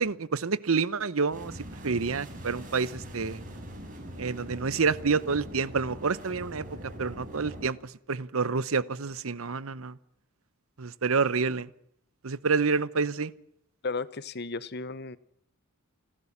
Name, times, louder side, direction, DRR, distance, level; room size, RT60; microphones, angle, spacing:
voice 1, 0.0-3.4 4.2-10.0 10.8-11.7 12.2-13.3, right 4 dB, 70° right, 0.8 m, -28 dB
sound 1, 1.3-7.7, equal, 40° right, 5.9 m, -42 dB
voice 2, 13.8-15.2, left 4 dB, 50° left, 0.8 m, -34 dB
29.5 x 12.5 x 7.3 m
head